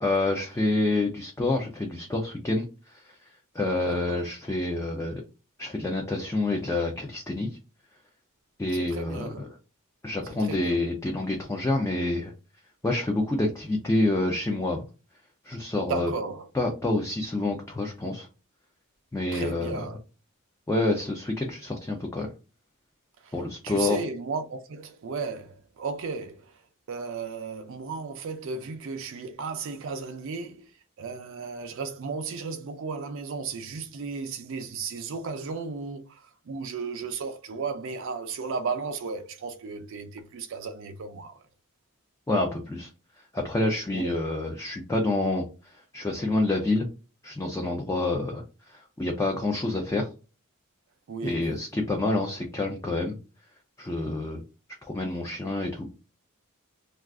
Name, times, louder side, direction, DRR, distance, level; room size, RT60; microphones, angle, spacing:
voice 1, 0.0-3.2 3.5-5.2 5.6-7.6 8.6-9.5 10.0-12.3 12.8-14.9 15.4-16.1 16.5-18.3 19.1-19.8 20.7-22.3 23.3-24.0 42.3-42.9 43.2-46.9 47.2-50.1 51.2-53.2 53.8-54.4 54.9-55.8, left 2 dB, 15° left, 0.4 m, -28 dB
voice 2, 3.9-4.2 8.7-9.4 10.4-10.8 15.9-16.5 19.3-20.0 23.2-23.3 23.6-26.5 26.9-30.7 31.0-41.4 43.9-44.2 51.1-51.5, right 4 dB, 60° right, 0.4 m, -35 dB
2.4 x 2.3 x 3.4 m
head